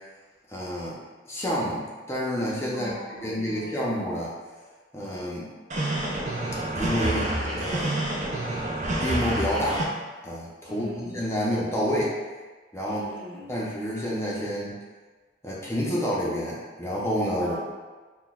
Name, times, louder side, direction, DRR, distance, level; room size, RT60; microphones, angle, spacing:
voice 1, 0.5-1.0 1.3-2.9 3.2-4.3 4.9-5.5 6.7-7.3 7.6-8.0 9.0-9.9 10.2-12.1 12.7-13.0 13.5-14.7 15.4-17.6, equal, 15° left, -5 dB, 0.6 m, -28 dB
voice 2, 2.7-3.8 10.7-11.2 12.8-13.5 17.4-17.6, left 1 dB, 70° right, -6 dB, 0.9 m, -41 dB
sound 1, 5.7-9.8, right 1 dB, 45° right, 0.5 m, -28 dB
5.8 x 2.2 x 2.3 m, 1.3 s
head